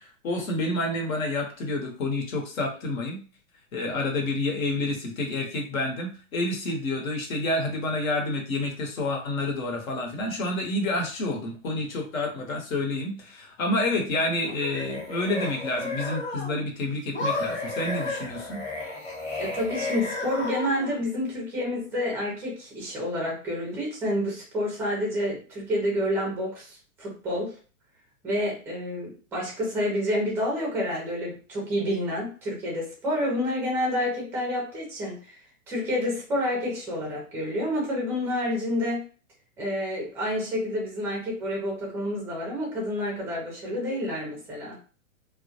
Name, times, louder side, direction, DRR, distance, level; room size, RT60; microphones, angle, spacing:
voice 1, 0.0-3.2 3.7-18.6, left 2 dB, 75° left, 1 dB, 1.1 m, -29 dB
sound 1, 14.4-16.6 17.1-21.0, left 2 dB, 15° left, 0.7 m, -32 dB
voice 2, 19.4-27.6 28.2-35.4 35.7-39.0 39.6-44.8, left 1 dB, 5° right, -2 dB, 0.3 m, -29 dB
2.1 x 2.1 x 2.7 m, 0.37 s
hypercardioid pair, 135°, 41 cm